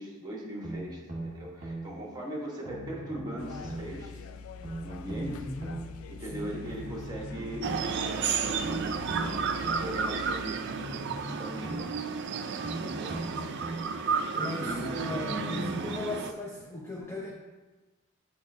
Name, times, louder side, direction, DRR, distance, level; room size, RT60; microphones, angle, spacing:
voice 1, 0.0-4.3 4.8-5.5 6.1-12.0 12.7-13.2 14.3-16.0, right 1 dB, 20° right, -2 dB, 1.2 m, -40 dB
sound 1, 0.6-1.9 2.6-3.9 4.6-5.9 6.6-7.9 8.6-9.9 10.6-11.9 12.6-13.9 14.6-15.9 16.6-16.7, right 2 dB, 35° right, 1.4 m, -39 dB
sound 2, 3.4-10.5, left 5 dB, 75° left, 0.3 m, -45 dB
voice 2, 5.2-5.7 6.3-6.6 12.9-13.6 14.4-17.3, left 2 dB, 10° left, -3 dB, 0.6 m, -38 dB
sound 3, 7.6-16.3, right 5 dB, 55° right, 0.4 m, -32 dB
8.2 x 4.8 x 2.7 m, 1.2 s
head